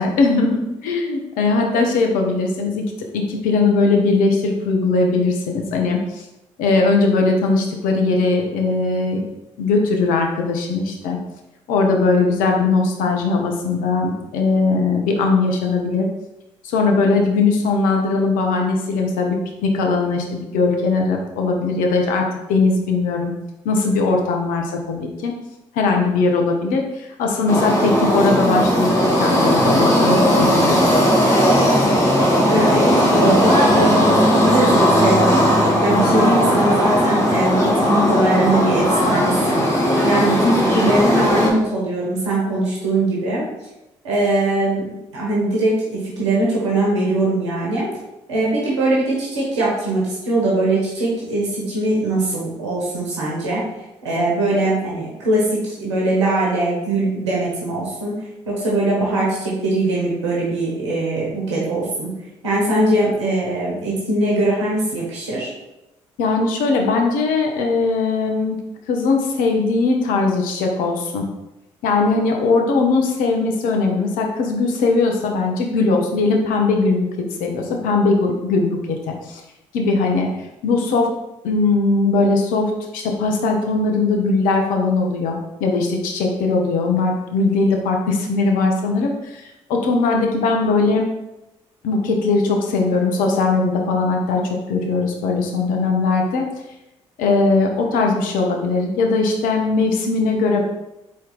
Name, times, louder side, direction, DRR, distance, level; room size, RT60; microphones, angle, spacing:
voice 1, 0.0-6.2 6.6-9.2 9.6-11.2 11.7-16.0 16.6-23.3 23.6-25.3 25.7-28.9 29.2-30.8 66.2-68.6 68.9-71.2 71.8-79.4 79.7-80.3 80.6-81.1 81.4-91.1 91.8-94.4 94.7-96.5 97.2-100.6, left 3 dB, 70° left, 2 dB, 0.8 m, -19 dB
sound 1, 27.5-41.5, equal, 20° left, 1.7 m, -17 dB
voice 2, 32.5-35.5 35.8-39.6 40.0-43.4 44.0-47.9 48.3-53.6 54.0-58.1 58.4-62.1 62.4-65.5, right 1 dB, 90° right, -5 dB, 1.0 m, -21 dB
4.2 x 3.2 x 3.9 m, 0.94 s
hypercardioid pair, 45°, 15 cm